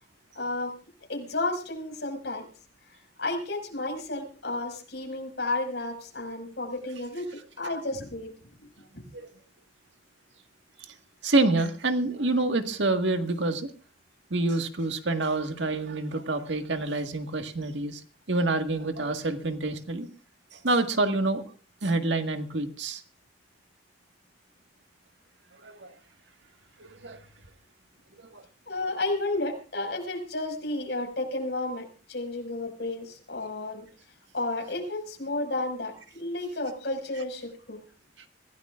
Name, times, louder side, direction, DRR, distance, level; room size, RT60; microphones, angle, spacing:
voice 1, 0.4-0.7 1.1-2.5 3.2-8.3 8.6-8.7 8.9-9.0 28.7-33.8 34.3-37.8, left 2 dB, 70° left, 5.6 m, -32 dB
voice 2, 11.2-13.7 14.3-18.0 18.3-20.1 20.5-21.4 21.8-23.0 25.6-25.9 26.8-27.2 28.2-28.4, right 2 dB, 85° right, 1.7 m, -27 dB
25.0 x 17.0 x 2.5 m
head